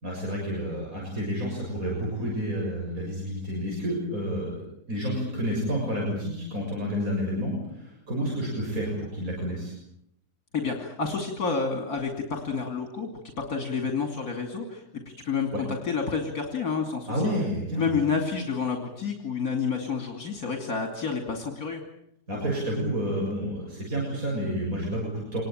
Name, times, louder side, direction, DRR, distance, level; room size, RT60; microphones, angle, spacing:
voice 1, 0.0-4.6 4.9-9.7 15.5-15.6 17.1-18.0 22.3-25.4, equal, 55° right, -2 dB, 7.4 m, -30 dB
voice 2, 10.5-13.1 13.4-17.3 17.8-21.8, left 5 dB, 65° left, 4 dB, 3.3 m, -29 dB
26.0 x 21.0 x 9.0 m, 0.75 s
omnidirectional pair, 1.7 m